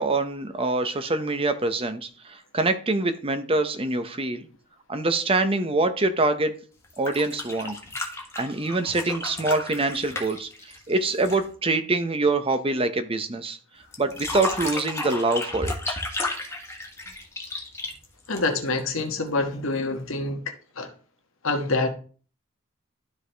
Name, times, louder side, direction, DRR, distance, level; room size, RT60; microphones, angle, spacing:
voice 1, 0.0-4.5 4.9-6.5 7.0-7.8 8.4-13.6 14.0-16.0, right 2 dB, 25° right, 0.8 m, -25 dB
sound 1, 6.8-11.5 13.9-18.8 20.2-20.3, left 2 dB, 15° left, 1.4 m, -33 dB
voice 2, 18.3-20.9 21.4-21.9, left 3 dB, 80° left, 1.4 m, -26 dB
12.5 x 4.7 x 3.4 m
head